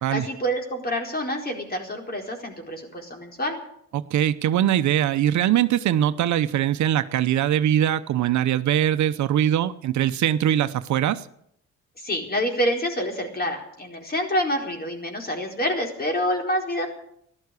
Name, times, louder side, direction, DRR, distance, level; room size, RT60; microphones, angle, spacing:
voice 1, 0.1-3.6 12.0-16.9, equal, 30° left, 2 dB, 4.4 m, -27 dB
voice 2, 3.9-11.2, right 11 dB, 70° right, 12 dB, 0.8 m, -22 dB
14.5 x 12.0 x 8.3 m, 0.73 s
cardioid pair, 90°, 30 cm